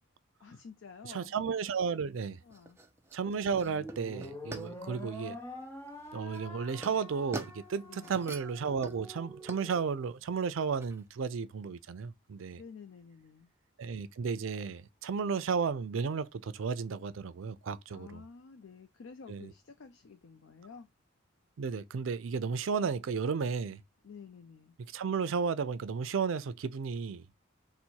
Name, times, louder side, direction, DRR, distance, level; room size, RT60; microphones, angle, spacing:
voice 1, 0.4-1.3 2.4-2.8 4.7-5.0 7.9-8.2 12.5-13.5 17.9-20.9 24.0-24.8, left 5 dB, 75° left, 0.5 m, -51 dB
voice 2, 1.1-2.4 3.1-5.4 6.1-12.6 13.8-18.2 19.3-19.5 21.6-23.8 24.9-27.2, right 5 dB, 80° right, 0.4 m, -33 dB
sound 1, 1.8-11.1, right 2 dB, 15° right, 0.4 m, -48 dB
sound 2, 3.6-10.1, left 1 dB, 10° left, 0.8 m, -46 dB
4.0 x 2.1 x 4.5 m
head